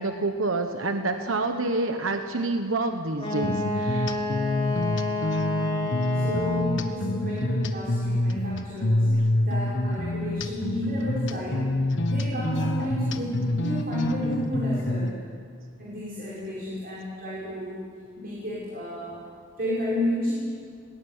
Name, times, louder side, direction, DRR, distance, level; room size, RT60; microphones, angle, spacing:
voice 1, 0.0-4.1 9.0-9.3, right 2 dB, 70° right, 6 dB, 1.3 m, -28 dB
Wind instrument woodwind instrument, 3.2-6.9, left 3 dB, 25° left, 3.7 m, -30 dB
sound 1, 3.4-15.1, left 1 dB, 65° left, 1.4 m, -27 dB
voice 2, 6.1-9.1 9.4-11.7 12.0-15.1 15.8-17.9 18.2-19.2 19.6-20.3, equal, 50° right, -5 dB, 5.7 m, -31 dB
19.5 x 19.5 x 9.8 m, 2.2 s
head